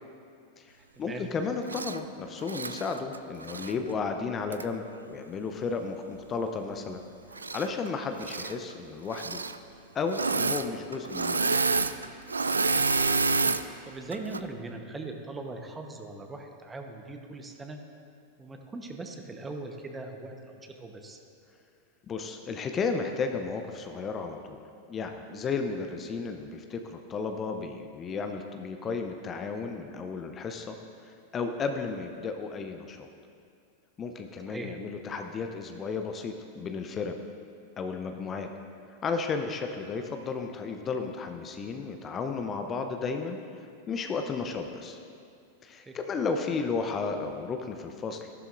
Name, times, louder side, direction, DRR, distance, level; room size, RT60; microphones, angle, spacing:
voice 1, 1.0-7.0 7.5-9.4 9.9-11.7 22.1-24.6 24.9-30.8 31.0-33.1 34.0-37.1 37.8-38.5 39.0-45.0 45.6-48.3, left 4 dB, 30° left, 5 dB, 0.7 m, -33 dB
Engine / Mechanisms, 1.7-2.0 2.4-3.7 4.5-4.6 7.3-7.9 8.1-8.5 9.1-9.6 10.1-10.7 10.9-13.6 14.1-14.4, right 4 dB, 90° right, 0.3 m, -28 dB
voice 2, 13.8-17.8 18.4-21.2 34.5-34.7 45.9-46.0, right 2 dB, 15° right, 4 dB, 1.1 m, -40 dB
14.0 x 12.0 x 2.6 m, 2.4 s
hypercardioid pair, 95°, 0 cm